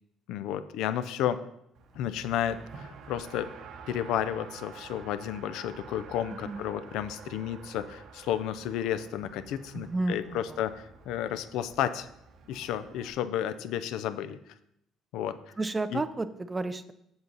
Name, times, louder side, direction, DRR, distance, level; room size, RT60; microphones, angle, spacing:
voice 1, 0.3-1.4 1.9-3.5 3.9-12.1 12.5-14.4 15.1-15.5 15.9-16.0, left 10 dB, 70° left, 12 dB, 0.5 m, -32 dB
Race car auto racing, 1.7-13.1, right 5 dB, 50° right, 0.8 m, -49 dB
voice 2, 9.7-10.6 15.6-16.9, right 2 dB, 15° right, 13 dB, 0.3 m, -32 dB
7.9 x 7.1 x 4.0 m, 0.77 s
cardioid pair, 175°, 0 cm